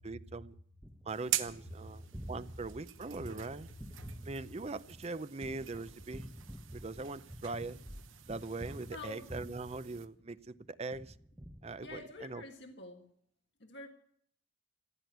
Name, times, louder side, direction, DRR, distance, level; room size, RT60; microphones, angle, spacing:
voice 1, 0.0-0.5 1.1-2.0 2.3-3.7 4.3-6.3 6.7-7.8 8.3-11.1 11.6-12.4, right 3 dB, 30° right, 15 dB, 0.5 m, -41 dB
Gunshot gunfire, 0.8-10.5 10.9-12.3, equal, 10° right, 1.0 m, -49 dB
sound 1, 1.1-10.1, right 12 dB, 80° right, 1.0 m, -44 dB
voice 2, 8.9-9.3 11.8-13.1 13.6-13.9, left 2 dB, 60° left, 2 dB, 1.7 m, -48 dB
15.0 x 9.7 x 9.2 m, 0.63 s
head